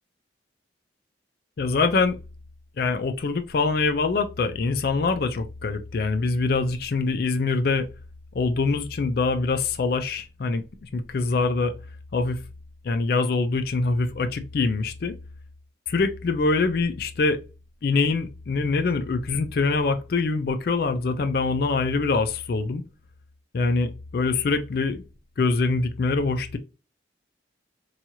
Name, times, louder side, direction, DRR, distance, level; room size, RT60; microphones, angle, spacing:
voice 1, 1.6-2.2 2.8-7.9 8.3-11.7 12.1-12.4 12.8-15.1 15.9-17.4 17.8-22.8 23.5-25.0 25.4-26.6, left 3 dB, 50° left, 0.3 m, -24 dB
2.7 x 2.3 x 2.9 m
head